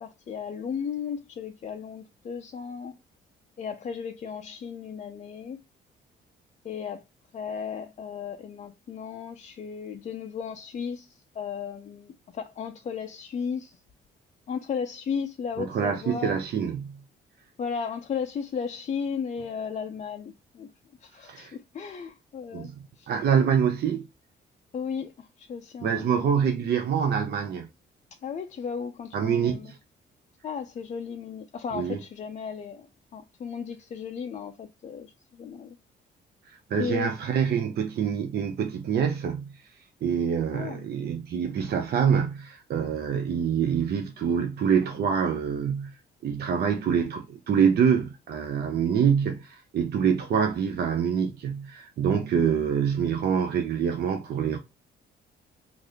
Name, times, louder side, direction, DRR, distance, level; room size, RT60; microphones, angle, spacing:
voice 1, 0.0-3.0 3.6-5.6 6.6-7.0 7.3-13.8 14.5-16.4 17.6-20.7 21.0-22.7 23.0-23.1 24.7-26.4 28.2-29.7 30.4-32.9 33.1-35.8 36.8-37.1 40.4-40.8, left 6 dB, 35° left, 0.4 m, -35 dB
voice 2, 15.6-17.0 21.2-21.6 22.5-24.1 25.8-27.7 29.1-29.8 31.7-32.0 36.5-39.6 40.0-46.0 46.2-54.6, right 7 dB, 55° right, 0.5 m, -26 dB
3.2 x 2.5 x 2.6 m
cardioid pair, 90°, 20 cm